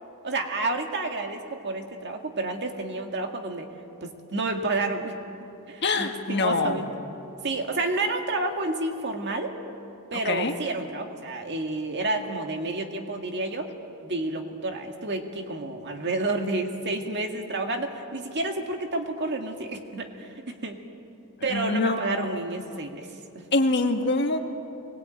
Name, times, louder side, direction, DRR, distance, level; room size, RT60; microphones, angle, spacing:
voice 1, 0.2-3.7 4.0-5.2 5.7-6.9 7.4-9.6 10.1-13.7 14.0-20.8 21.4-23.1 23.3-23.5, right 2 dB, 50° right, 4 dB, 2.0 m, -30 dB
voice 2, 5.8-6.8 10.2-10.6 21.4-22.4 22.7-22.9 23.5-24.4, left 2 dB, 50° left, 5 dB, 1.7 m, -25 dB
24.0 x 20.5 x 9.1 m, 2.9 s
head